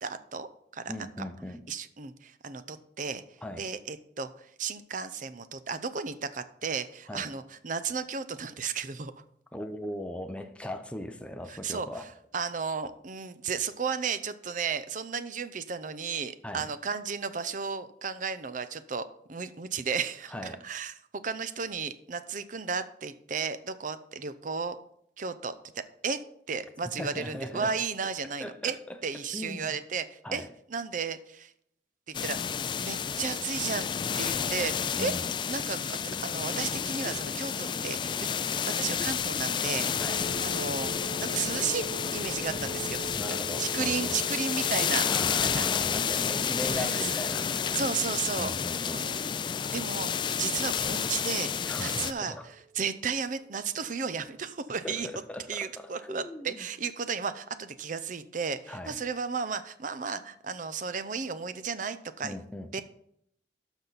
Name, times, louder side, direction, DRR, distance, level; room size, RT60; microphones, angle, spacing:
voice 1, 0.0-0.9 1.7-3.2 3.6-9.1 11.5-12.1 12.3-20.9 21.2-24.8 25.2-26.2 26.5-28.8 29.0-31.5 32.1-32.4 32.8-33.9 34.2-35.1 35.5-38.1 38.8-41.8 42.1-43.0 43.6-45.1 45.4-45.7 46.7-47.1 47.7-48.5 48.9-49.2 49.7-50.1 50.4-55.1 55.5-62.4 62.7-62.8, right 5 dB, 45° right, 0.6 m, -34 dB
voice 2, 0.9-1.6 3.4-3.6 7.1-7.3 9.5-12.0 16.4-16.7 20.3-20.6 27.0-27.8 28.4-29.0 29.3-29.7 30.2-30.5 35.0-35.3 40.0-40.2 43.1-44.2 45.1-47.8 48.4-49.1 51.6-52.5 54.8-56.7 58.7-59.0 62.2-62.8, left 1 dB, 5° left, 0.7 m, -39 dB
sound 1, 32.1-52.1, left 7 dB, 25° left, 0.3 m, -30 dB
sound 2, 39.6-53.4, right 4 dB, 75° right, 2.5 m, -45 dB
12.0 x 6.2 x 4.1 m
head